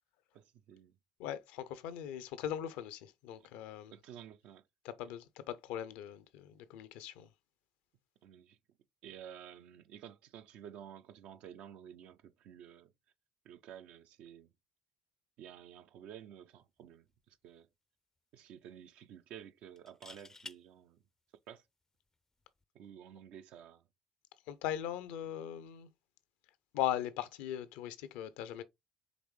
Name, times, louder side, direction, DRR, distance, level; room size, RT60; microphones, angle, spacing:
voice 1, 0.3-1.0 3.9-4.6 8.2-8.6 9.0-12.9 13.4-14.5 15.4-17.7 18.3-21.0 21.5-21.6 22.7-23.8, right 9 dB, 65° right, 0.5 m, -52 dB
voice 2, 1.2-3.9 4.8-7.3 24.5-25.9 26.7-28.6, left 11 dB, 70° left, 0.5 m, -39 dB
sound 1, 16.9-17.1 17.5-17.6 19.8-20.6 22.4-22.6, left 3 dB, 20° left, 0.4 m, -50 dB
5.1 x 3.2 x 3.0 m
hypercardioid pair, 55°, 2 cm